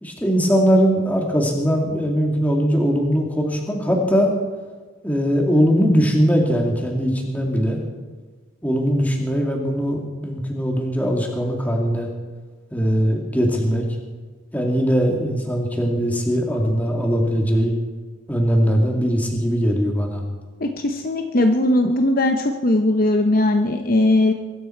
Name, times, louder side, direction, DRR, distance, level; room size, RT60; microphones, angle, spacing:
voice 1, 0.0-4.3 5.0-7.8 8.6-12.1 12.7-13.9 14.5-17.7 18.3-20.2, equal, 10° left, 0 dB, 2.5 m, -20 dB
voice 2, 20.6-24.3, left 1 dB, 45° left, 5 dB, 0.8 m, -19 dB
23.0 x 13.0 x 4.6 m, 1.4 s
head